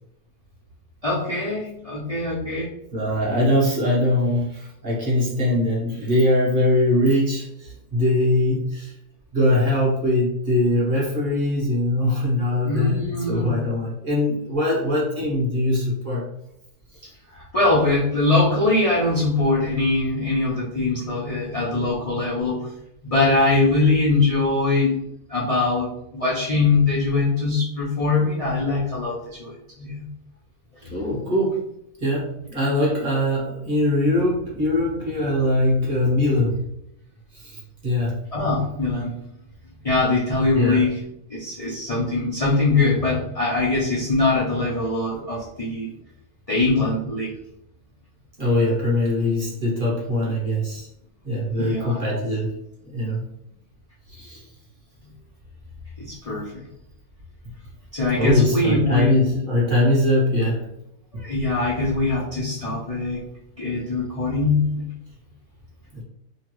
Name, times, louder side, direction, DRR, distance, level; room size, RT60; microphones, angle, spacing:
voice 1, 1.0-2.7 12.6-13.7 17.3-22.7 23.0-25.0 25.3-30.1 30.8-30.9 38.3-39.2 39.8-41.0 41.3-45.9 46.5-47.3 51.6-52.0 56.0-56.7 57.9-59.4 61.2-63.3 63.6-64.9, left 3 dB, 60° left, -7 dB, 0.3 m, -22 dB
voice 2, 2.9-8.9 9.3-16.3 16.9-17.0 30.9-31.6 32.0-36.6 37.3-38.2 40.5-40.8 48.4-50.9 51.2-52.5 52.9-53.2 54.1-54.4 58.2-60.7 61.1-61.2 65.9-66.0, left 1 dB, 40° right, -6 dB, 1.0 m, -22 dB
3.0 x 2.3 x 3.0 m, 0.79 s
omnidirectional pair, 1.6 m